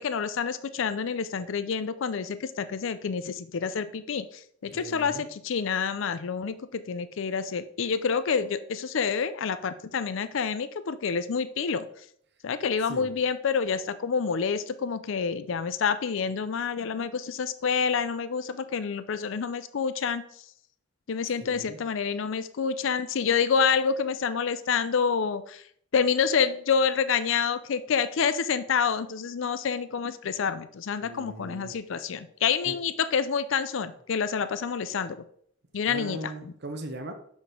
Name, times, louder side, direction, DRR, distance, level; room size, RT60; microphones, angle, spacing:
voice 1, 0.0-11.9 12.4-20.3 21.1-25.6 25.9-35.2 35.7-36.2, left 6 dB, 70° left, 13 dB, 0.5 m, -28 dB
voice 2, 4.7-5.3 12.9-13.1 21.5-21.8 31.0-31.7 32.6-32.8 35.9-37.1, right 1 dB, 55° right, 6 dB, 0.9 m, -39 dB
6.1 x 5.3 x 4.9 m, 0.64 s
head